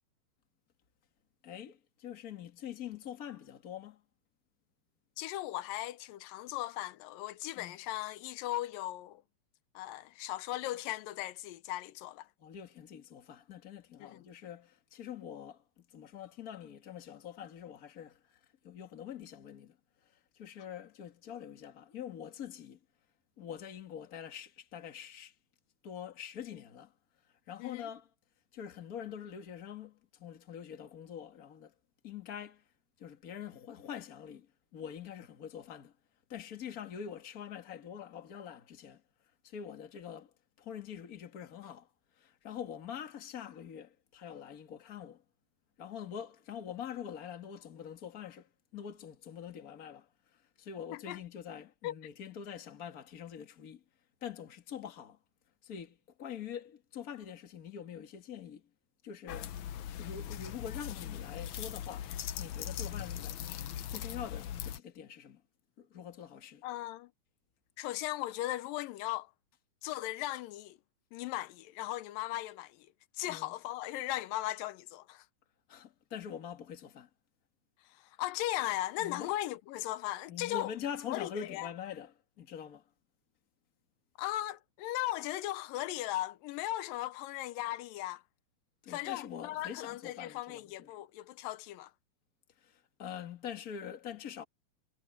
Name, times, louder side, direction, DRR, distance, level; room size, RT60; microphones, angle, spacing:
voice 1, 1.4-4.0 7.6-7.8 12.4-18.4 18.6-19.8 20.3-22.8 23.4-25.3 25.8-26.9 27.5-28.1 28.5-31.7 32.0-32.6 33.0-35.9 36.3-39.0 39.4-41.9 42.2-45.2 45.8-50.1 50.6-53.8 54.2-55.2 55.6-58.6 59.0-59.5 60.0-62.1 62.4-63.4 63.9-65.4 65.8-66.6 73.3-73.5 75.7-77.1 79.0-79.3 80.3-82.8 88.8-90.9 92.6-94.4, left 8 dB, 35° left, 1.6 m, -45 dB
voice 2, 5.2-9.2 9.8-12.3 14.0-14.3 27.6-27.9 50.9-51.2 51.8-52.0 66.6-67.1 67.8-69.3 69.8-70.8 71.1-72.9 73.1-75.3 77.9-80.7 81.1-81.7 84.2-88.2 88.9-91.9, left 15 dB, 85° left, 2.5 m, -37 dB
sound 1, 59.3-64.8, left 10 dB, 70° left, 2.2 m, -40 dB
omnidirectional pair, 3.9 m